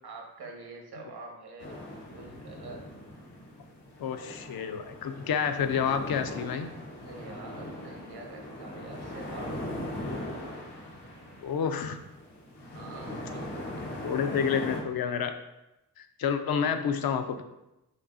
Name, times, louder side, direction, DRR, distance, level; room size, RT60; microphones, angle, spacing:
voice 1, 0.0-2.9 7.0-9.7 12.7-13.4 14.0-14.1 16.6-17.0, right 3 dB, 70° right, 2 dB, 0.9 m, -46 dB
Sea Waves Myrtos Greece, 1.6-14.8, left 1 dB, 90° left, 1.1 m, -40 dB
voice 2, 4.0-6.7 11.4-12.0 14.0-15.3 16.0-17.4, left 7 dB, 65° left, 8 dB, 0.5 m, -29 dB
5.7 x 2.7 x 2.6 m, 0.93 s
cardioid pair, 80°, 39 cm